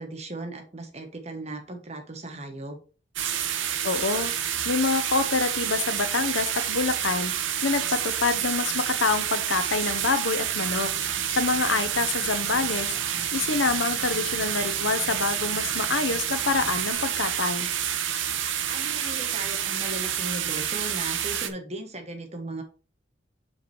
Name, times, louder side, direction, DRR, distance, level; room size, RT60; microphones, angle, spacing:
voice 1, 0.0-2.8 18.6-22.6, right 2 dB, 35° right, 5 dB, 1.4 m, -37 dB
sound 1, 3.2-21.5, right 9 dB, 90° right, 0.9 m, -28 dB
voice 2, 3.8-4.3 4.6-7.3 7.6-10.9 11.3-12.9 13.3-17.7, left 4 dB, 85° left, 10 dB, 0.9 m, -26 dB
sound 2, 10.6-16.9, left 1 dB, 20° left, 1.2 m, -47 dB
5.7 x 5.2 x 4.5 m, 0.37 s
head